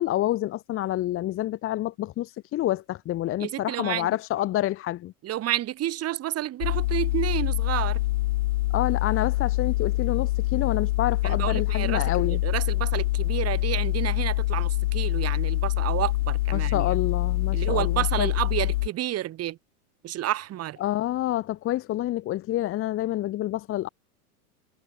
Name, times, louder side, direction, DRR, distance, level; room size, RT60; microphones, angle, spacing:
voice 1, 0.0-5.1 8.7-12.4 16.5-18.3 20.8-23.9, left 14 dB, 30° left, 1.2 m, -28 dB
voice 2, 3.4-4.1 5.2-8.0 11.2-17.0 17.5-19.6 20.0-20.8, right 13 dB, 30° right, 4.8 m, -30 dB
sound 1, 6.6-18.9, left 17 dB, 65° left, 1.9 m, -25 dB
hypercardioid pair, 120°, 46 cm